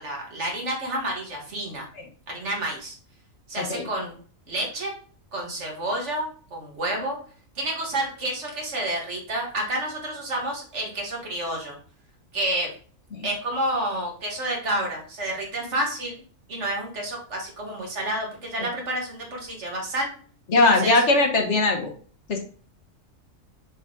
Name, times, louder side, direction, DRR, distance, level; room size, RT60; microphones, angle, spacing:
voice 1, 0.0-1.9 2.3-2.9 3.5-4.2 4.5-5.0 5.3-7.2 7.6-11.8 12.3-12.7 13.2-16.2 16.5-20.1 20.8-21.0, right 1 dB, 55° right, 0 dB, 2.0 m, -29 dB
voice 2, 3.6-3.9 13.1-13.3 20.5-21.9 22.3-22.4, left 2 dB, 60° left, 4 dB, 1.3 m, -20 dB
6.4 x 3.9 x 3.8 m, 0.43 s
omnidirectional pair, 1.4 m